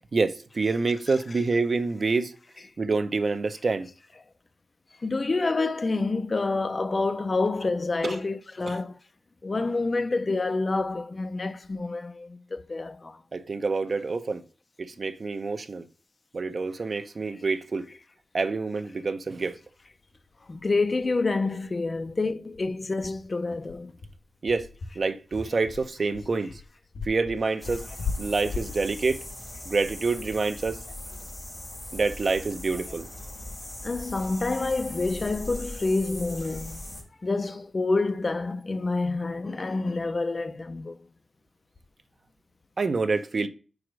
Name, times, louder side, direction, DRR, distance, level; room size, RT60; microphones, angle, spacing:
voice 1, 0.1-2.3 2.8-3.9 8.0-8.2 8.7-8.8 13.3-14.4 14.8-15.9 16.3-17.9 18.3-19.6 24.4-24.7 25.0-26.6 27.1-27.9 28.2-29.2 29.7-30.8 31.9-33.1 42.8-43.5, right 4 dB, 45° right, 0.7 m, -27 dB
voice 2, 5.0-9.0 9.4-13.2 20.5-23.9 33.8-36.8 37.2-41.0, left 3 dB, 35° left, 0.6 m, -28 dB
sound 1, 20.1-20.2 20.5-20.6 21.0-21.1 21.5-21.6 22.0-30.5, left 4 dB, 85° left, 2.3 m, -38 dB
sound 2, 27.6-37.0, left 1 dB, 20° left, 3.7 m, -40 dB
5.0 x 4.9 x 6.1 m
wide cardioid pair, 140°, 0 cm